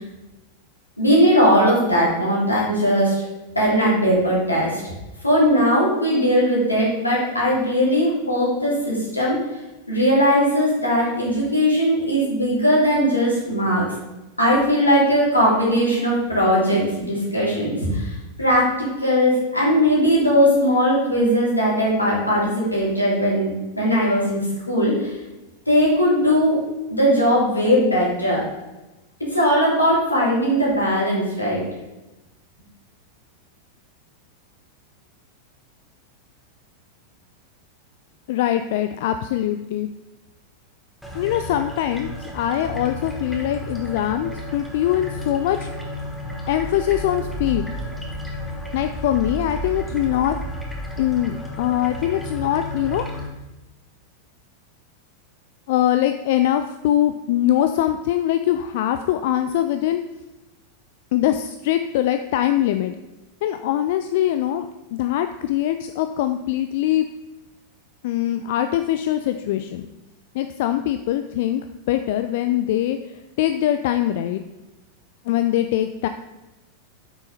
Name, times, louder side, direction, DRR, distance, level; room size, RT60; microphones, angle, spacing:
voice 1, 1.0-3.1 3.5-4.9 5.2-9.4 9.9-13.8 14.4-25.1 25.7-26.6 26.9-28.4 29.2-31.6, equal, 85° left, -5 dB, 3.1 m, -19 dB
voice 2, 38.3-39.9 41.1-45.7 46.5-47.7 48.7-50.4 51.0-53.1 55.7-60.0 61.1-62.9 63.4-64.7 64.9-67.1 68.0-69.9 70.3-74.4 75.3-76.1, left 12 dB, 50° left, 9 dB, 0.4 m, -22 dB
sound 1, 41.0-53.3, equal, ahead, 1.4 m, -32 dB
8.3 x 6.1 x 4.2 m, 1.0 s
figure-of-eight pair, 90°, 0 cm